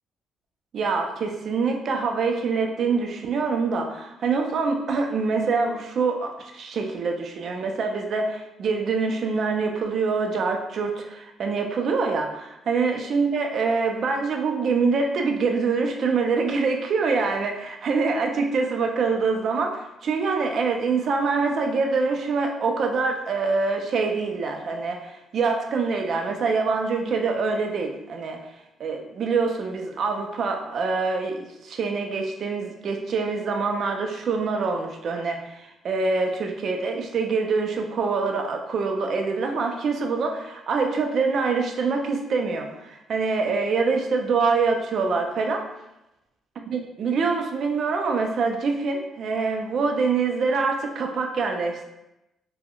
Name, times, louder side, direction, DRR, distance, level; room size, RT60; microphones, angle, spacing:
voice 1, 0.7-28.4 28.8-45.6 46.7-51.8, right 4 dB, 60° right, 3 dB, 0.4 m, -25 dB
3.6 x 2.1 x 2.3 m, 0.91 s
cardioid pair, 90°, 0 cm